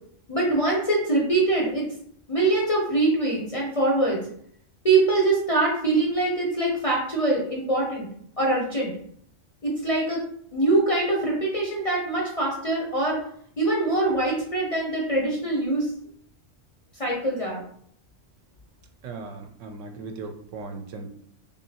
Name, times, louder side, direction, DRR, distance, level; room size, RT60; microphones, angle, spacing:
voice 1, 0.3-1.9 2.3-4.2 4.8-8.1 8.4-8.9 9.6-10.2 10.5-13.2 13.6-15.9 17.0-17.6, right 2 dB, 40° left, -3 dB, 0.5 m, -23 dB
voice 2, 19.0-21.1, right 4 dB, 80° right, 5 dB, 0.9 m, -37 dB
3.4 x 2.6 x 2.7 m, 0.65 s
omnidirectional pair, 1.3 m